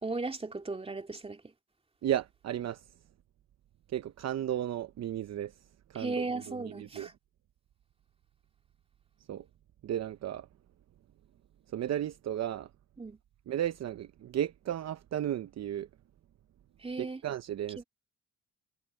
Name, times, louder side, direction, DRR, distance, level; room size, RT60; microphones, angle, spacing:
voice 1, 0.0-1.5 5.9-7.1 13.0-13.2 16.8-17.2 17.8-17.9, right 3 dB, 20° right, 2.6 m, -36 dB
voice 2, 2.0-2.8 3.9-5.5 5.9-7.1 9.3-9.5 9.8-10.5 11.7-12.7 13.5-15.9 17.0-17.8, right 11 dB, 60° right, 0.9 m, -34 dB
cardioid pair, 90°, 30 cm